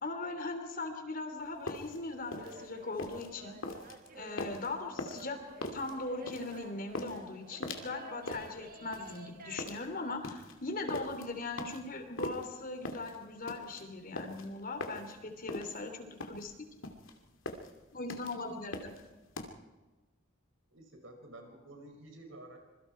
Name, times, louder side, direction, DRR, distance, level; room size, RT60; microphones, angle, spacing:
voice 1, 0.0-3.6 4.1-5.4 5.7-16.5 17.9-18.9, left 3 dB, 45° left, 6 dB, 3.3 m, -40 dB
sound 1, 1.4-19.5, left 2 dB, 80° left, 2.6 m, -42 dB
sound 2, 2.2-9.6, right 2 dB, 45° right, 1.8 m, -52 dB
voice 2, 20.7-22.6, right 1 dB, 80° right, 3 dB, 5.9 m, -51 dB
26.5 x 22.5 x 4.6 m, 1.2 s
head